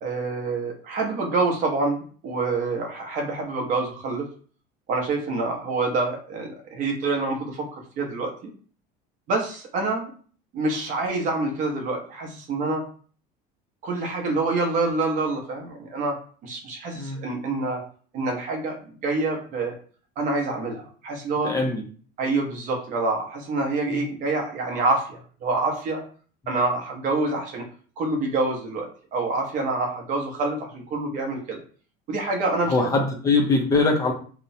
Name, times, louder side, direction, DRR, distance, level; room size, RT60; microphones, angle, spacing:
voice 1, 0.0-4.3 4.9-8.5 9.3-10.1 10.5-12.8 13.8-16.1 16.4-17.8 18.1-18.7 19.0-19.7 20.2-21.5 22.2-26.0 26.5-27.6 28.0-28.9 29.1-31.6 32.1-32.9, right 3 dB, 40° right, 1 dB, 0.7 m, -26 dB
voice 2, 21.4-21.8 23.9-24.0 32.7-34.1, left 3 dB, 15° left, 2 dB, 0.4 m, -22 dB
2.8 x 2.0 x 2.6 m, 0.43 s
cardioid pair, 160°, 20 cm